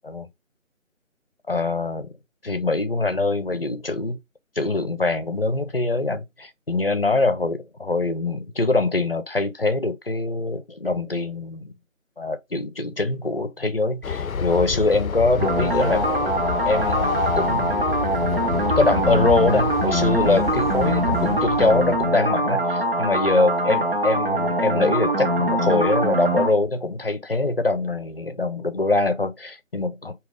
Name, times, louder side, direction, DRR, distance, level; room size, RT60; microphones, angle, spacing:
voice 1, 1.5-2.1 2.4-4.2 4.6-11.7 12.2-16.0 16.7-17.8 18.8-30.1, left 2 dB, 45° left, 0.6 m, -23 dB
Train, 14.0-22.2, left 6 dB, 90° left, 0.6 m, -28 dB
sound 1, 15.4-26.5, right 1 dB, 45° right, 0.7 m, -23 dB
3.6 x 3.0 x 4.8 m
figure-of-eight pair, 165°, 40 cm